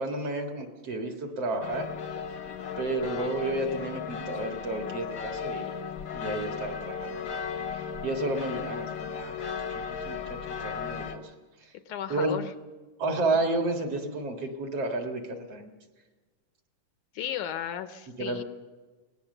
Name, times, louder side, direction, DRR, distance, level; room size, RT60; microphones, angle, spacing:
voice 1, 0.0-1.9 2.8-5.7 6.1-7.2 7.7-9.4 9.7-11.3 11.6-11.7 12.1-12.4 13.0-15.7 18.2-18.4, right 2 dB, 50° right, 3 dB, 2.7 m, -31 dB
sound 1, 1.6-11.2, left 6 dB, 55° left, 1.4 m, -36 dB
voice 2, 11.9-12.5 17.1-18.4, left 10 dB, 75° left, 10 dB, 2.0 m, -34 dB
23.0 x 18.0 x 6.7 m, 1.3 s
omnidirectional pair, 3.8 m